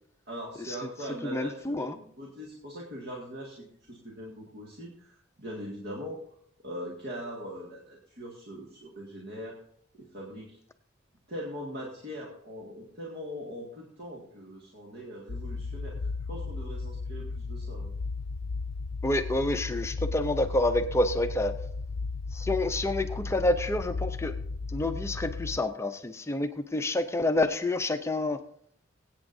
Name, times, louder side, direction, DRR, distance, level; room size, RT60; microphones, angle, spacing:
voice 1, 0.3-6.2 6.6-9.6 10.0-10.6 11.3-17.9, equal, 55° right, -3 dB, 1.9 m, -41 dB
voice 2, 1.2-1.9 19.0-21.5 22.3-24.3 24.7-28.4, left 1 dB, 15° left, 8 dB, 0.5 m, -28 dB
sound 1, 15.3-25.6, left 4 dB, 85° left, 0.5 m, -35 dB
23.0 x 8.6 x 2.7 m, 0.65 s
head